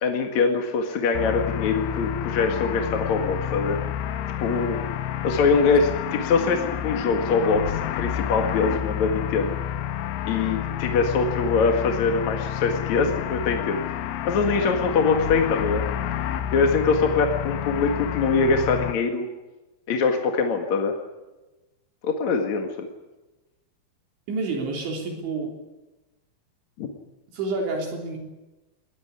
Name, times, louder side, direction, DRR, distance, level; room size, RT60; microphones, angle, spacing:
voice 1, 0.0-3.8 4.4-4.8 5.2-9.5 10.3-13.8 14.2-15.9 16.5-19.3 19.9-20.9 22.0-22.9 26.8-26.9, left 4 dB, 50° left, 3 dB, 2.5 m, -23 dB
sound 1, 1.1-18.9, left 10 dB, 80° left, 3.6 m, -29 dB
voice 2, 24.3-25.5 27.3-28.2, right 3 dB, 75° right, 1 dB, 5.7 m, -28 dB
21.0 x 19.5 x 9.7 m, 1.1 s
omnidirectional pair, 5.4 m